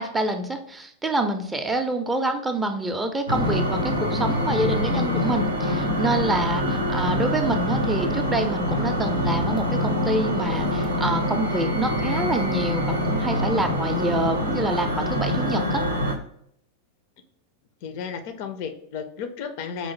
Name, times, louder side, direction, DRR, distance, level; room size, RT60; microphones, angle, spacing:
voice 1, 0.0-15.8, right 2 dB, 10° right, 6 dB, 0.4 m, -27 dB
sound 1, 3.3-16.1, left 1 dB, 80° right, 0.5 m, -25 dB
voice 2, 17.8-19.9, left 6 dB, 45° left, 8 dB, 0.4 m, -33 dB
5.0 x 2.0 x 3.0 m, 0.70 s
figure-of-eight pair, 90°, 0 cm